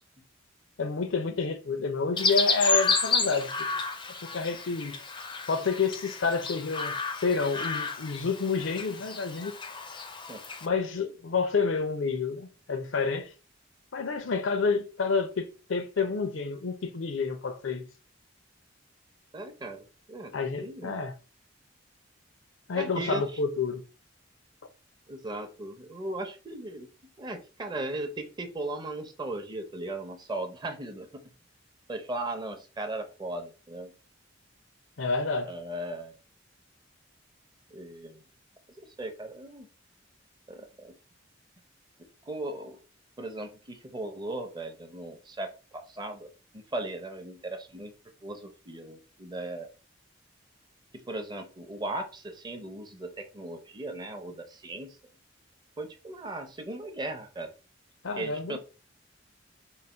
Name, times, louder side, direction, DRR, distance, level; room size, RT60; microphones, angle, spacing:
voice 1, 0.8-3.7 4.2-5.0 5.5-9.6 10.6-13.3 13.9-17.8 20.3-21.1 22.7-23.8 35.0-35.5 58.0-58.6, left 4 dB, 75° left, 0.6 m, -29 dB
Chirp tweet, 2.2-10.7, left 4 dB, 25° left, 0.4 m, -31 dB
voice 2, 19.3-21.0 22.7-23.2 25.1-26.9 27.2-31.2 31.9-33.9 35.5-36.1 37.7-38.2 38.8-39.7 40.5-40.9 42.3-42.8 43.2-46.3 46.5-47.9 48.2-49.7 50.9-55.0 55.8-57.5 58.2-58.6, right 2 dB, 20° right, 0.6 m, -37 dB
3.9 x 2.2 x 4.3 m
head